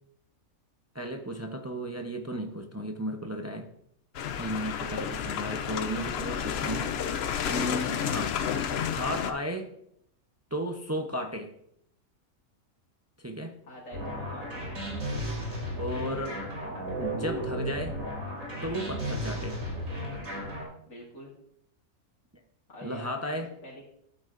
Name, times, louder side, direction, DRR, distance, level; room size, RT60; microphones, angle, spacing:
voice 1, 0.9-3.7 4.4-6.9 7.5-8.4 8.9-9.7 10.5-11.5 13.2-13.6 15.7-16.4 17.0-18.0 18.6-19.6 22.8-23.5, equal, 25° right, 4 dB, 0.3 m, -34 dB
sound 1, 4.1-9.3, left 8 dB, 60° left, 0.7 m, -31 dB
voice 2, 13.6-14.7 19.3-19.6 20.9-21.3 22.7-23.9, equal, 80° left, -4 dB, 2.6 m, -46 dB
sound 2, 13.9-20.6, equal, 65° right, 3.3 m, -34 dB
13.0 x 7.9 x 2.5 m, 0.72 s
omnidirectional pair, 1.5 m